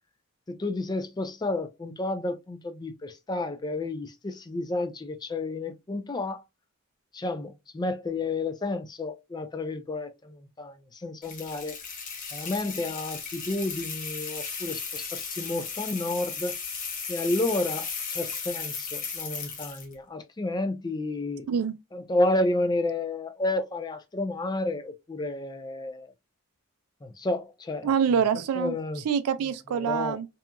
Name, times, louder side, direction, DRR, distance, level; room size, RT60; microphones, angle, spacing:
voice 1, 0.5-6.4 7.1-11.8 12.3-16.6 17.1-21.5 21.9-26.1 27.0-27.9 28.6-29.0 29.7-30.2, left 2 dB, 20° left, 0.3 m, -31 dB
sound 1, 11.2-19.9, left 5 dB, 40° left, 0.7 m, -36 dB
voice 2, 27.8-30.3, right 7 dB, 80° right, 0.3 m, -26 dB
2.8 x 2.3 x 2.2 m
head